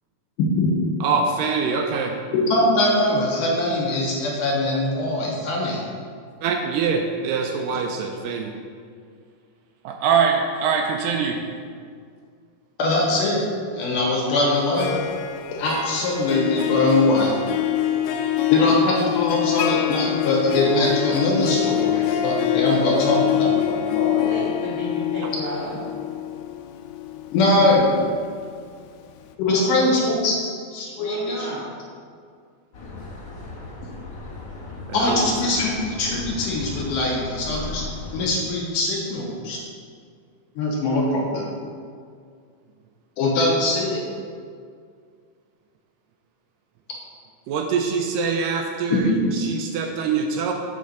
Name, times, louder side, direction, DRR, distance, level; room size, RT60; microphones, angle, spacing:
voice 1, 1.0-2.1 6.4-8.5 9.8-11.4 34.9-35.6 47.5-50.5, right 5 dB, 80° right, 3 dB, 2.0 m, -24 dB
voice 2, 2.5-5.7 12.8-13.4 13.7-14.9 15.6-17.3 18.5-24.2 27.3-27.9 29.4-30.3 30.7-31.5 34.9-37.8 38.1-39.6 40.6-41.5 43.2-44.0 48.9-49.3, left 2 dB, 65° left, -2 dB, 2.6 m, -22 dB
Harp, 14.6-28.5, left 12 dB, 90° left, 2.5 m, -25 dB
voice 3, 24.1-25.8 29.4-29.8 31.0-31.6, equal, 25° left, -7 dB, 1.2 m, -32 dB
sound 1, 32.7-38.3, left 2 dB, 50° left, 1.8 m, -36 dB
8.5 x 4.4 x 6.6 m, 2.1 s
omnidirectional pair, 4.4 m